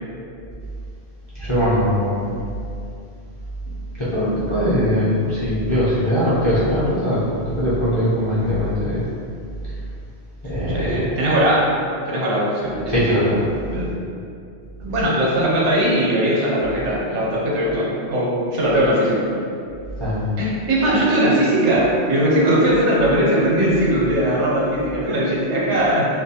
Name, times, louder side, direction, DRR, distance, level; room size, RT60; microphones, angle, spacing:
voice 1, 1.3-2.3 4.0-7.3 7.6-9.1 10.4-10.9 12.9-13.5 20.0-20.2, equal, 35° left, -12 dB, 0.5 m, -20 dB
voice 2, 10.7-11.7 12.1-13.0 13.7-13.9 14.8-19.4 20.4-26.1, right 1 dB, 85° right, -5 dB, 1.0 m, -19 dB
2.5 x 2.1 x 2.7 m, 2.5 s
omnidirectional pair, 1.2 m